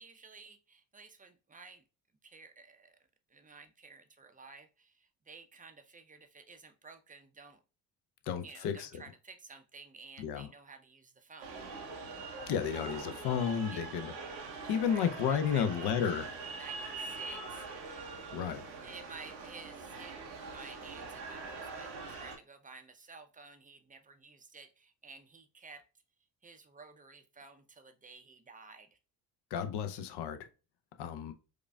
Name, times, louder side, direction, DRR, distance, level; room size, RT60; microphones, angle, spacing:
voice 1, 0.0-1.8 2.2-3.0 3.3-7.6 8.4-11.6 13.5-13.8 14.8-16.1 16.4-18.0 18.8-25.8 26.4-29.0, right 4 dB, 15° right, 0.6 m, -53 dB
voice 2, 8.3-8.9 10.2-10.5 12.5-14.1 14.7-16.3 18.3-18.7 29.5-30.4 31.0-31.3, left 8 dB, 50° left, 0.7 m, -32 dB
sound 1, 11.4-22.4, right 4 dB, 85° right, 0.9 m, -43 dB
4.8 x 2.4 x 2.3 m
hypercardioid pair, 55°, 50 cm